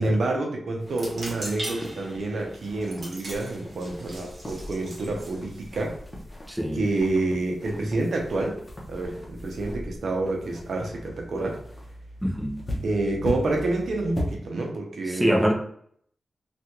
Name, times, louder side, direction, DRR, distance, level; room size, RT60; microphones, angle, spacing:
voice 1, 0.0-6.0 6.7-8.6 8.9-11.6 12.8-15.4, right 2 dB, 80° right, 1 dB, 0.7 m, -28 dB
sound 1, 0.8-14.4, left 1 dB, 25° left, 0.9 m, -38 dB
sound 2, 0.9-6.2, right 1 dB, 50° right, 1.0 m, -41 dB
voice 2, 6.5-6.8 12.2-12.6 15.1-15.5, equal, 5° right, -1 dB, 0.7 m, -24 dB
3.4 x 2.4 x 2.9 m, 0.63 s
wide cardioid pair, 105°, 0 cm